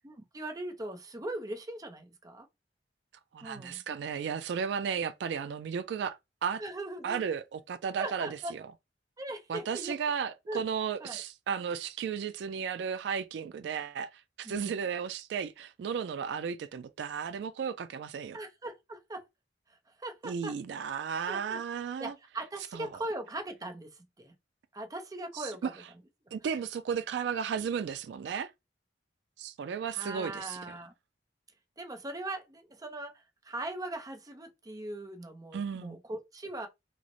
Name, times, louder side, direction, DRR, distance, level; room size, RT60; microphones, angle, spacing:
voice 1, 0.0-2.5 3.4-3.8 6.6-7.2 8.0-8.5 9.2-10.0 10.5-10.6 11.0-11.2 14.4-14.7 18.3-19.2 20.0-20.5 21.3-21.6 22.0-24.3 24.7-25.7 29.9-30.9 31.8-36.7, right 1 dB, 20° right, 0.6 m, -40 dB
voice 2, 3.3-6.6 7.0-8.7 9.5-18.4 20.2-22.1 22.7-22.9 25.3-25.7 26.3-28.5 29.4-30.6 35.5-36.0, right 7 dB, 75° right, 0.3 m, -34 dB
3.0 x 2.1 x 3.8 m
head